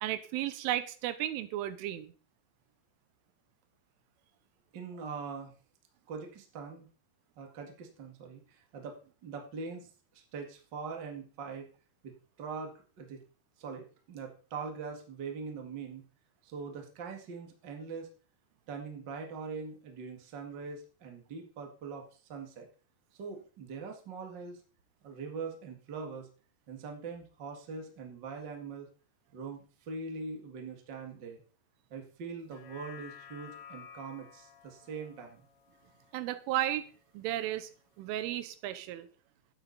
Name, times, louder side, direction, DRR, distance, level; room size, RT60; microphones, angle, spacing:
voice 1, 0.0-2.1 36.1-36.8 37.1-37.7 38.0-39.1, right 13 dB, 90° right, 12 dB, 3.4 m, -34 dB
voice 2, 4.7-5.5 6.1-6.9 7.4-9.0 9.2-11.7 12.0-13.2 13.6-16.0 16.4-18.1 18.7-22.7 23.2-24.6 25.0-26.3 26.7-28.9 29.3-31.4 31.9-35.4, right 5 dB, 65° right, 2 dB, 1.0 m, -42 dB
sound 1, 32.4-37.0 37.4-37.5, left 8 dB, 75° left, 3.7 m, -53 dB
11.5 x 9.1 x 4.1 m, 0.39 s
omnidirectional pair, 5.6 m